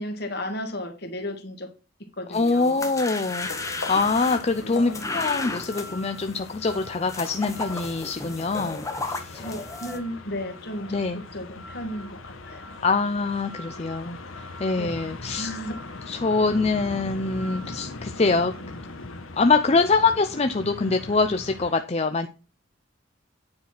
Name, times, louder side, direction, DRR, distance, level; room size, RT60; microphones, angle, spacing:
voice 1, 0.0-1.7 2.2-2.9 4.6-5.1 9.3-12.8 14.8-15.1 15.4-15.8, left 1 dB, 55° left, 1.9 m, -34 dB
voice 2, 2.3-3.5 3.9-9.4 10.9-11.2 12.8-15.5 16.1-18.5 19.4-22.3, left 3 dB, 30° left, 0.5 m, -24 dB
sound 1, 2.3-10.0, left 3 dB, 15° left, 1.1 m, -34 dB
sound 2, 3.4-21.7, left 2 dB, 90° left, 1.3 m, -40 dB
9.6 x 4.8 x 5.9 m
head